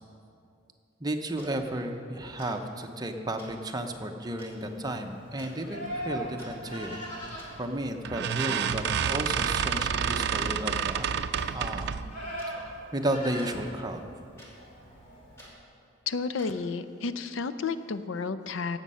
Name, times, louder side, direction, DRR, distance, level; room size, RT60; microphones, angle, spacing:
voice 1, 1.0-11.1 11.4-11.9 12.9-14.0, right 1 dB, 20° right, 4 dB, 0.8 m, -33 dB
sound 1, 1.4-1.5 2.4-2.5 3.4-3.5 4.4-4.5 5.4-5.5 6.2-6.5 7.4-7.5 8.4-8.5 9.4-9.5 10.4-10.5 11.4-11.5 12.4-12.5 13.4-13.5 14.4-14.5 15.4-15.5 16.4-16.5, equal, 15° left, 2.7 m, -50 dB
Livestock farm animals working animals, 4.5-15.5, equal, 40° left, 2.5 m, -42 dB
sound 2, 7.3-7.6 8.0-12.1, right 7 dB, 60° right, 0.4 m, -29 dB
voice 2, 16.1-18.8, left 4 dB, 75° left, 12 dB, 0.5 m, -31 dB
17.5 x 7.4 x 5.6 m, 2.5 s
head